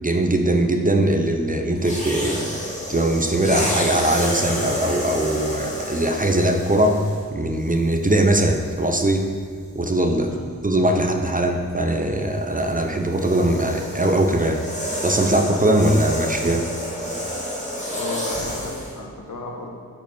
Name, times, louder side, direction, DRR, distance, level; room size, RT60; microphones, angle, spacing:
voice 1, 0.0-2.5 2.9-7.0 7.3-9.3 9.7-10.3 10.6-14.6 15.0-16.6, right 1 dB, 25° right, 4 dB, 0.7 m, -21 dB
sound 1, 1.8-7.3 8.1-8.3 12.3-19.0, equal, 20° left, 1.8 m, -29 dB
voice 2, 17.9-19.7, left 3 dB, 65° left, -1 dB, 1.5 m, -34 dB
6.8 x 5.6 x 6.0 m, 2.2 s
wide cardioid pair, 60°, 34 cm